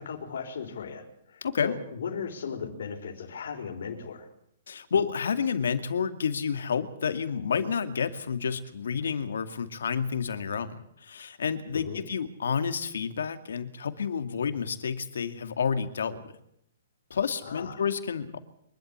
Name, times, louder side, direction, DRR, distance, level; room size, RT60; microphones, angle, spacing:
voice 1, 0.0-4.3 11.7-12.0 17.4-17.8, left 6 dB, 70° left, 3 dB, 4.1 m, -37 dB
voice 2, 1.4-1.7 4.7-16.3 17.1-18.4, left 6 dB, 85° left, 10 dB, 2.2 m, -30 dB
24.5 x 12.0 x 9.7 m, 0.74 s
hypercardioid pair, 170°, 0 cm